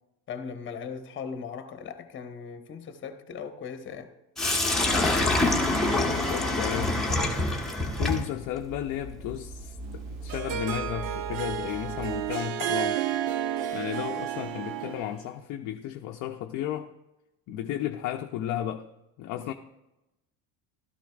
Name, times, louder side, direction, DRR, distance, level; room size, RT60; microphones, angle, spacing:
voice 1, 0.3-4.1, left 6 dB, 25° left, 1.1 m, -38 dB
Sink (filling or washing), 4.4-12.3, left 2 dB, ahead, 1.1 m, -28 dB
voice 2, 6.0-7.1 8.0-13.0 13.7-16.9 17.5-18.9 19.2-19.5, left 11 dB, 45° left, 0.6 m, -33 dB
Harp, 9.9-15.2, right 11 dB, 50° right, 0.7 m, -31 dB
13.0 x 13.0 x 2.4 m
supercardioid pair, 125°, 43 cm